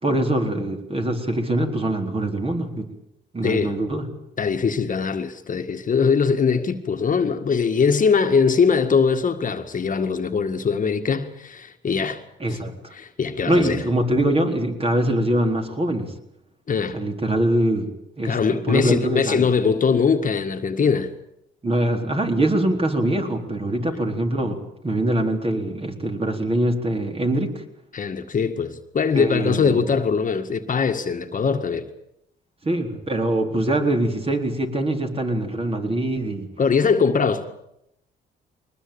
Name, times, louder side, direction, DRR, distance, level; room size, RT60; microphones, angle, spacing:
voice 1, 0.0-2.9 3.3-4.1 12.4-12.9 13.5-16.1 16.9-17.9 18.2-19.5 21.6-27.6 29.1-29.8 32.6-36.5, right 1 dB, 30° right, 4.1 m, -23 dB
voice 2, 3.4-3.7 4.4-12.2 12.5-12.6 12.9-13.8 16.7-17.0 18.2-21.1 27.9-31.9 36.6-37.5, left 5 dB, 40° left, 1.8 m, -21 dB
22.0 x 20.0 x 8.8 m
cardioid pair, 90°, 20 cm